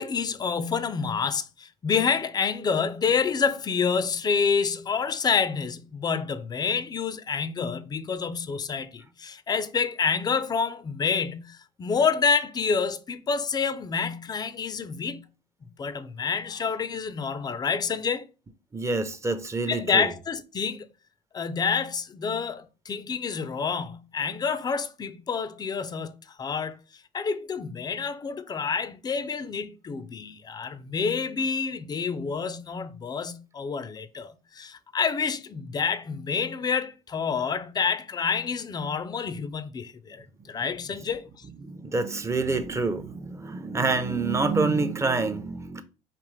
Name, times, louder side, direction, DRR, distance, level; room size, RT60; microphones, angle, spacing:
voice 1, 0.0-15.3 15.8-18.3 19.7-20.9 21.3-26.8 27.1-41.3, left 5 dB, 25° left, 0.5 m, -28 dB
voice 2, 18.7-20.1 41.6-45.8, right 3 dB, 20° right, 0.6 m, -27 dB
5.1 x 2.9 x 3.2 m
supercardioid pair, 95°, 16 cm